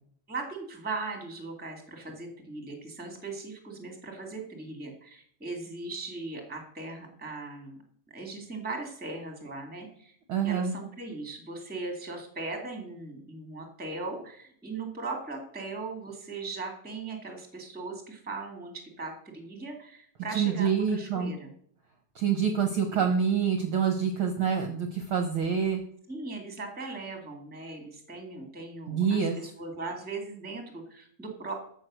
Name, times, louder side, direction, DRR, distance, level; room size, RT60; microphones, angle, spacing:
voice 1, 0.3-7.8 8.1-10.1 10.4-21.5 22.9-23.1 26.1-31.5, right 3 dB, 5° right, 3 dB, 1.9 m, -39 dB
voice 2, 10.3-10.7 20.3-21.3 22.1-25.8 28.9-29.4, right 7 dB, 60° right, 5 dB, 1.6 m, -26 dB
14.0 x 6.5 x 6.3 m, 0.62 s
omnidirectional pair, 3.3 m